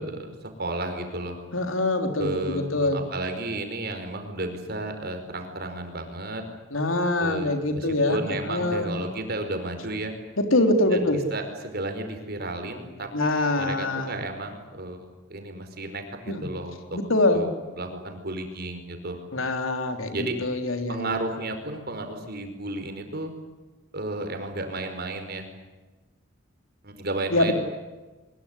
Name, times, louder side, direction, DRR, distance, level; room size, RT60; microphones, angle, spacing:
voice 1, 0.0-1.4 2.2-6.4 7.2-10.1 10.9-17.0 17.3-19.2 20.1-20.4 20.9-23.3 23.9-25.5 26.8-27.5, right 2 dB, 50° right, 6 dB, 4.9 m, -33 dB
voice 2, 1.5-3.0 6.7-8.2 8.5-8.9 10.4-11.2 13.1-14.2 16.3-16.5 16.9-17.5 19.3-21.1 27.3-27.5, left 2 dB, 80° left, 6 dB, 3.7 m, -24 dB
23.5 x 22.0 x 10.0 m, 1.2 s
head